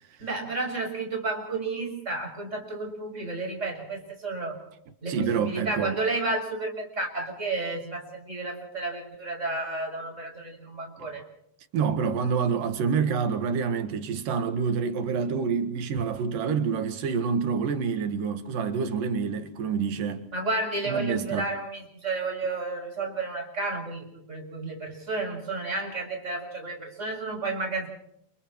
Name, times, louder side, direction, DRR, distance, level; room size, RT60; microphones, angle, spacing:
voice 1, 0.2-4.6 5.0-11.2 20.3-27.9, right 3 dB, 20° right, 6.6 m, -32 dB
voice 2, 5.1-6.0 11.0-11.1 11.7-20.2 20.8-21.5, right 6 dB, 85° right, 3.3 m, -27 dB
30.0 x 29.0 x 3.1 m
omnidirectional pair, 3.8 m